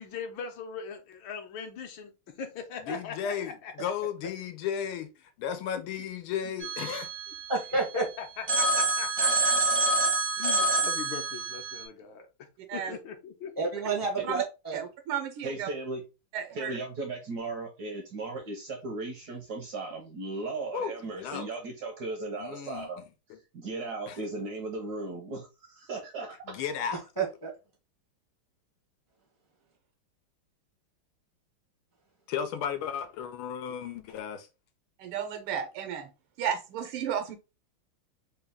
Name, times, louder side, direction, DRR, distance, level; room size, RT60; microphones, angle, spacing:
voice 1, 0.0-2.1 2.4-3.7 6.4-6.5 8.0-9.5 10.4-12.3 12.7-13.7, left 6 dB, 70° left, 1.3 m, -40 dB
voice 2, 2.8-7.1 20.7-21.5 22.4-23.0 23.3-23.4 24.1-24.2 26.5-27.1 32.3-34.5, left 8 dB, 90° left, 1.5 m, -34 dB
Telephone, 6.6-8.0 8.5-11.8, right 2 dB, 30° right, 0.4 m, -27 dB
voice 3, 7.5-8.0 13.6-14.8 27.2-27.5, right 4 dB, 35° left, 0.3 m, -29 dB
voice 4, 14.7-15.7 16.3-16.8 35.0-36.1 36.4-37.3, right 8 dB, 90° right, 1.7 m, -33 dB
voice 5, 15.4-16.0 16.5-23.0 23.5-26.6, right 3 dB, 65° right, 1.0 m, -36 dB
4.0 x 2.3 x 3.5 m
omnidirectional pair, 2.3 m